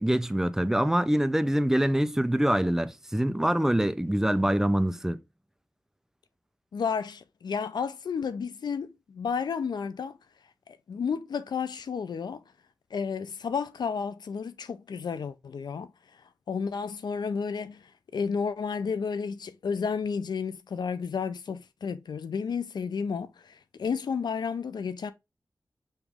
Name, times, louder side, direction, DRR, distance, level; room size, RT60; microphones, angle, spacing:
voice 1, 0.0-5.2, right 1 dB, 5° right, 0.4 m, -25 dB
voice 2, 6.7-10.2 10.7-12.4 12.9-15.9 16.5-25.1, left 6 dB, 85° left, 0.4 m, -32 dB
5.2 x 3.0 x 3.4 m
wide cardioid pair, 100°, 7 cm